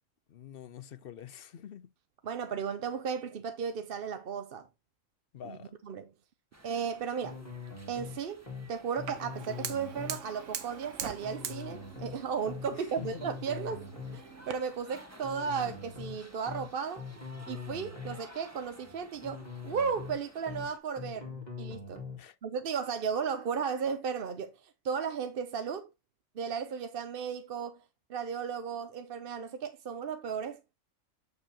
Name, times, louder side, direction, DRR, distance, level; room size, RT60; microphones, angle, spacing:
voice 1, 0.3-1.9 5.3-5.7 12.7-13.3 22.2-22.4, left 9 dB, 55° left, 0.7 m, -46 dB
voice 2, 2.2-4.7 5.4-5.6 5.8-6.1 6.6-7.4 7.9-8.4 8.7-13.8 14.1-17.0 17.5-22.0 22.4-25.9 26.4-27.8 28.1-30.8, right 6 dB, 55° right, 0.8 m, -35 dB
sound 1, 6.5-20.8, right 1 dB, 10° right, 1.6 m, -55 dB
sound 2, 7.2-8.2 8.5-8.7 9.0-10.2 11.2-12.2 12.5-12.7 13.0-14.2 15.2-16.2 16.5-16.7 17.0-18.2 19.2-20.2 20.5-20.7 21.0-22.2, left 5 dB, 35° left, 2.4 m, -42 dB
Fire, 9.1-14.5, right 7 dB, 70° right, 1.2 m, -43 dB
8.3 x 6.9 x 2.8 m
omnidirectional pair, 1.3 m